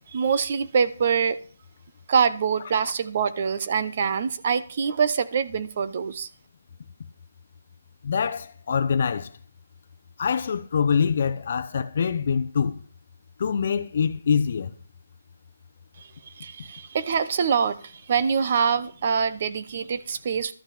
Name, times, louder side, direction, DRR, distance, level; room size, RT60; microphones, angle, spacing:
voice 1, 0.1-1.4 2.1-6.3 16.4-20.5, right 6 dB, 35° right, 0.8 m, -24 dB
voice 2, 8.0-9.3 10.2-12.8 13.4-14.7, left 6 dB, 40° left, 0.8 m, -24 dB
13.0 x 5.9 x 8.6 m
hypercardioid pair, 175°, 0 cm